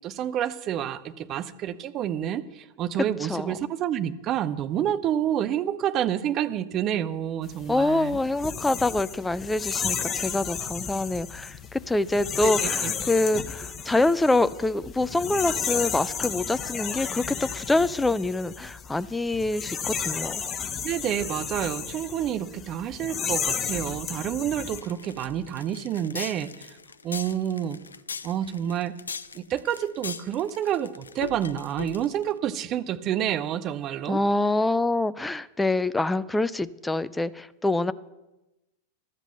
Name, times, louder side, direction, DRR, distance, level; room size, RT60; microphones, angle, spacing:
voice 1, 0.0-8.2 12.4-12.9 20.8-26.8 27.0-27.8 28.2-28.9 29.3-34.2, right 10 dB, 35° right, 12 dB, 0.7 m, -28 dB
voice 2, 3.2-3.5 7.7-20.4 34.1-37.9, left 2 dB, 5° left, 15 dB, 0.4 m, -25 dB
sound 1, 7.5-24.8, left 7 dB, 25° left, 0.9 m, -33 dB
sound 2, 24.7-32.3, left 5 dB, 75° left, 0.4 m, -39 dB
13.0 x 8.1 x 6.8 m, 1.0 s
figure-of-eight pair, 90°, 0 cm